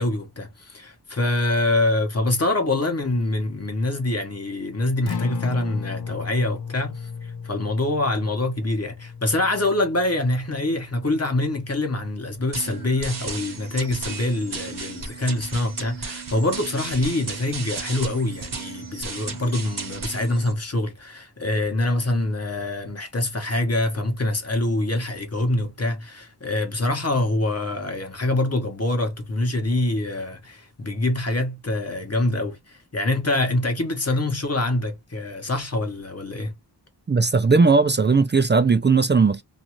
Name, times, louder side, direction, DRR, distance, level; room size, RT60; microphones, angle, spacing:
voice 1, 0.0-36.5, left 2 dB, 35° left, 1.0 m, -25 dB
Acoustic guitar, 4.9-13.1, left 6 dB, 65° left, 0.7 m, -36 dB
sound 1, 12.5-20.5, right 4 dB, 50° right, 0.9 m, -34 dB
voice 2, 37.1-39.4, right 4 dB, 30° right, 0.3 m, -18 dB
2.6 x 2.3 x 2.9 m
wide cardioid pair, 60°, 41 cm